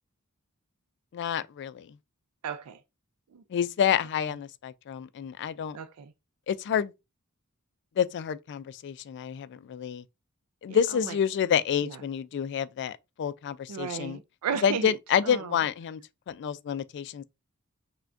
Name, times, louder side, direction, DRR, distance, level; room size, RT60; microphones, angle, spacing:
voice 1, 1.1-2.0 3.5-5.8 6.5-6.9 8.0-10.0 10.6-14.2 14.6-16.0 16.3-17.2, left 8 dB, 50° left, 0.3 m, -28 dB
voice 2, 2.4-2.8 3.3-3.4 5.7-6.1 10.7-10.8 11.0-11.1 11.8-12.0 13.7-14.9 15.2-15.6, right 6 dB, 85° right, 0.4 m, -34 dB
5.8 x 2.2 x 2.5 m
head